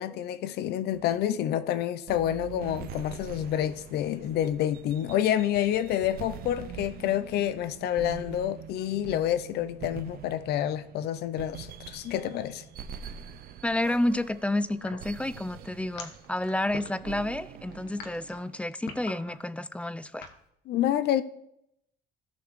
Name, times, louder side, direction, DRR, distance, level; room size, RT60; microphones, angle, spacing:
voice 1, 0.0-12.6 20.7-21.2, left 11 dB, 75° left, 0.6 m, -28 dB
sound 1, 0.9-18.6, right 8 dB, 65° right, 0.6 m, -44 dB
voice 2, 13.6-20.3, left 1 dB, 5° left, 0.4 m, -30 dB
sound 2, 14.8-20.4, left 5 dB, 90° left, 1.3 m, -43 dB
15.5 x 6.0 x 3.2 m
cardioid pair, 110°, 17 cm